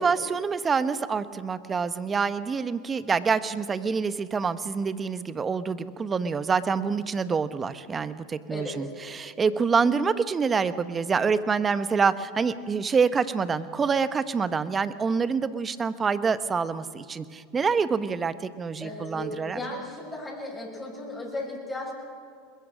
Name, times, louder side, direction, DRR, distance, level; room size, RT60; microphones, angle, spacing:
voice 1, 0.0-19.6, right 5 dB, 25° right, 13 dB, 1.1 m, -26 dB
voice 2, 18.8-21.9, left 1 dB, 10° left, -2 dB, 7.1 m, -36 dB
21.5 x 21.5 x 6.2 m, 2.2 s
hypercardioid pair, 100°, 0 cm